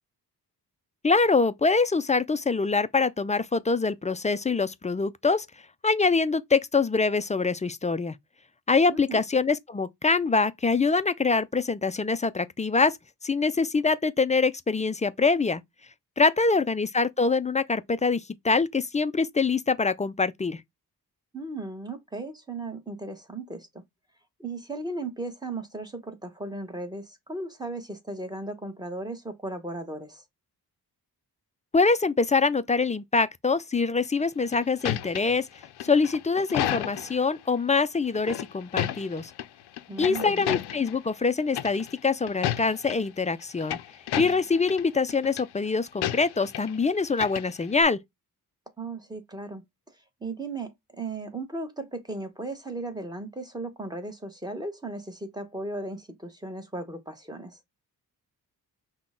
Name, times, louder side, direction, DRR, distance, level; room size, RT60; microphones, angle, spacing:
voice 1, 1.0-5.5 5.8-8.2 8.7-13.0 13.2-15.6 16.2-20.6 31.7-35.5 35.8-39.3 40.0-43.8 44.2-48.0, left 4 dB, 20° left, 0.3 m, -24 dB
voice 2, 8.9-9.2 21.3-23.8 24.4-30.2 39.9-40.5 48.8-49.6 50.2-57.6, right 2 dB, 10° right, 1.2 m, -36 dB
sound 1, 34.2-37.3 38.1-39.5 39.8-41.0 41.5-42.0 42.3-43.0 43.4-44.8 45.1-45.4 46.0-46.8 47.0-47.8, left 12 dB, 85° left, 0.5 m, -32 dB
5.9 x 2.2 x 3.6 m
cardioid pair, 85°, 38 cm